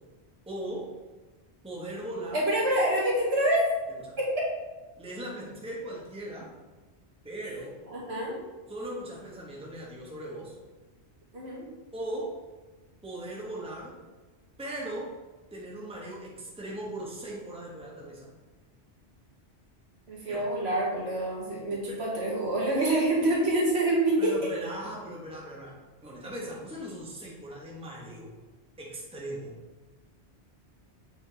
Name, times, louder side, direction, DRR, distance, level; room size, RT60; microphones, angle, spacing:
voice 1, 0.5-0.9 1.6-2.4 4.1-4.2 5.0-6.5 7.2-7.8 8.7-10.6 11.9-12.4 13.0-14.0 14.6-15.1 15.5-18.3 20.3-20.5 21.9-22.0 24.2-28.3 28.8-29.6, right 1 dB, 5° right, -4 dB, 1.0 m, -39 dB
voice 2, 2.3-3.6 4.2-4.3 7.9-8.3 11.3-11.7 20.1-24.3, right 1 dB, 70° right, -4 dB, 1.6 m, -26 dB
7.0 x 3.4 x 3.9 m, 1.2 s
omnidirectional pair, 1.1 m